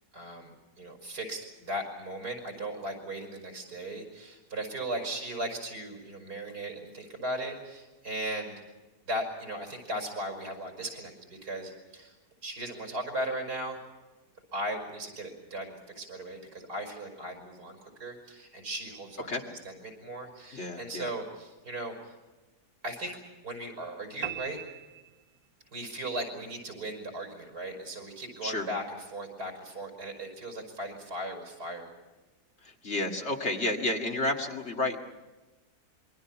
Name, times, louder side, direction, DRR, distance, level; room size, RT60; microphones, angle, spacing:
voice 1, 0.1-0.5 0.8-8.6 9.1-12.1 12.4-13.8 14.5-22.2 22.8-23.2 23.4-24.6 25.7-31.9, right 1 dB, 85° right, 3 dB, 5.8 m, -37 dB
voice 2, 20.5-21.1 28.4-28.7 32.6-35.0, left 2 dB, 45° left, 1 dB, 2.3 m, -31 dB
sound 1, 24.2-25.8, right 11 dB, 65° right, 1.4 m, -39 dB
27.0 x 23.0 x 5.8 m, 1.1 s
omnidirectional pair, 1.7 m